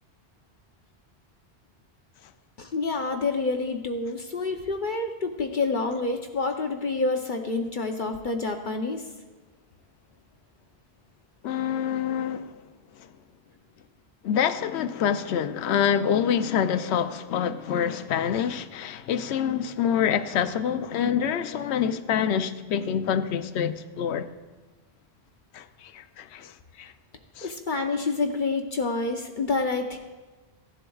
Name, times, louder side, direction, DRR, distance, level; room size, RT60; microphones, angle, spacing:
voice 1, 2.6-9.0 27.4-30.0, left 3 dB, 55° left, 0.8 m, -28 dB
voice 2, 11.4-12.6 13.0-13.1 14.2-24.3 25.5-26.9 27.4-27.5, left 8 dB, 90° left, 0.9 m, -26 dB
16.5 x 11.0 x 2.3 m
omnidirectional pair, 1.1 m